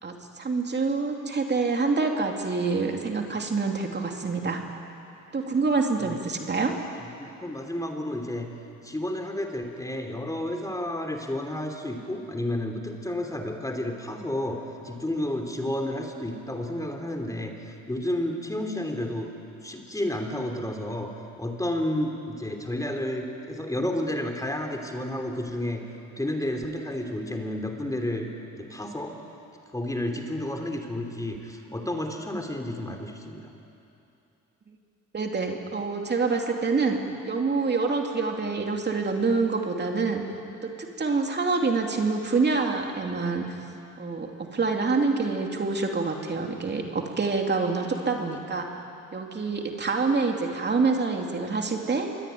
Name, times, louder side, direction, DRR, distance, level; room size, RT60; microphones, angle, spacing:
voice 1, 0.0-4.6 5.3-6.7 35.1-37.0 37.3-40.2 40.6-40.7 41.0-43.6 44.0-48.7 49.1-52.1, right 4 dB, 35° right, 2 dB, 2.9 m, -26 dB
voice 2, 7.2-8.5 8.8-19.3 19.6-21.1 21.4-25.8 26.2-28.3 28.5-29.2 29.7-33.5, left 1 dB, 10° left, 3 dB, 3.2 m, -31 dB
25.5 x 22.0 x 9.5 m, 2.7 s
cardioid pair, 90°, 30 cm